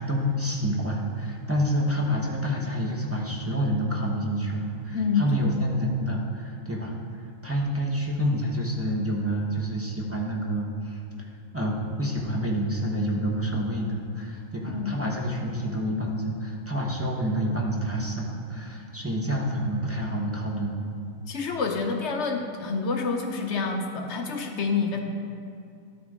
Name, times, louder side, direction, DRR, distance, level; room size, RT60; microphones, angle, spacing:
voice 1, 0.0-6.9 7.4-11.0 11.5-20.8, equal, 10° right, -2 dB, 0.7 m, -28 dB
voice 2, 4.9-5.5 14.7-15.0 21.3-25.0, left 4 dB, 60° left, 3 dB, 0.8 m, -27 dB
12.0 x 4.4 x 4.9 m, 2.5 s
omnidirectional pair, 1.7 m